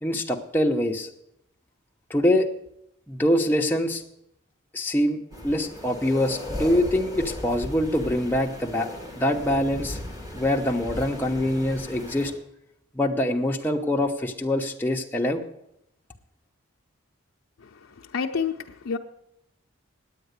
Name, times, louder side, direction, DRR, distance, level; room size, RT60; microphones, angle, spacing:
voice 1, 0.0-1.1 2.1-2.5 3.1-4.0 4.7-5.2 5.4-8.9 9.2-10.0 10.3-12.3 12.9-15.4, left 1 dB, 10° left, 0 dB, 0.8 m, -24 dB
sound 1, 5.3-12.3, left 1 dB, 20° right, 1.8 m, -37 dB
voice 2, 17.6-19.0, left 6 dB, 80° left, 1 dB, 0.6 m, -30 dB
9.2 x 8.8 x 8.1 m, 0.79 s
head